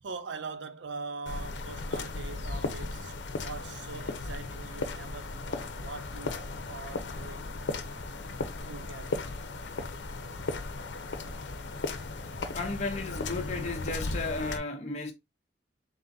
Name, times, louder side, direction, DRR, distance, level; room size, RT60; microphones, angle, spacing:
voice 1, 0.0-6.4 6.7-7.5 8.6-9.2 10.3-10.4 12.3-12.4, right 4 dB, 85° right, 0.5 m, -42 dB
sound 1, 1.3-14.6, left 3 dB, 90° left, 0.7 m, -36 dB
voice 2, 12.5-15.1, left 3 dB, 40° left, 0.8 m, -34 dB
4.0 x 3.7 x 2.7 m
head